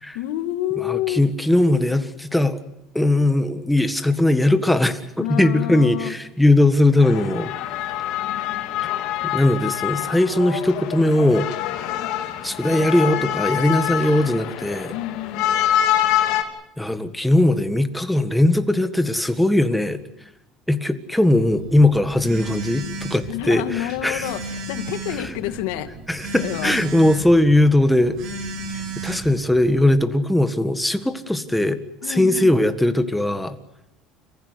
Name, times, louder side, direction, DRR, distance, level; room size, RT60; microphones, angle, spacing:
voice 1, 0.1-1.2 5.2-6.2 14.9-15.5 23.3-25.9 26.3-26.8 32.0-32.6, left 14 dB, 90° left, 9 dB, 2.1 m, -28 dB
voice 2, 0.8-2.6 2.9-7.5 9.2-11.5 12.4-14.9 16.8-20.0 20.7-24.3 25.2-25.3 26.1-28.2 28.7-33.6, left 1 dB, 5° left, 9 dB, 1.6 m, -19 dB
sound 1, 7.0-16.4, left 11 dB, 65° left, 3.2 m, -25 dB
Telephone, 21.3-29.9, right 2 dB, 55° right, 6.2 m, -34 dB
29.5 x 15.0 x 9.5 m, 0.85 s
cardioid pair, 145°, 0 cm